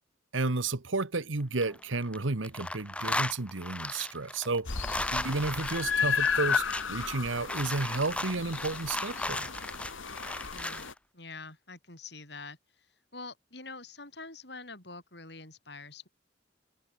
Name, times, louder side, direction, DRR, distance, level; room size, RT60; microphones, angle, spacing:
voice 1, 0.3-4.8 5.1-9.5, right 3 dB, 85° right, 1.3 m, -32 dB
sound 1, 1.4-2.2 2.4-10.9, left 1 dB, 5° left, 2.3 m, -36 dB
sound 2, 4.6-10.9, left 6 dB, 90° left, 2.1 m, -33 dB
voice 2, 10.5-16.1, left 3 dB, 60° left, 7.2 m, -46 dB
head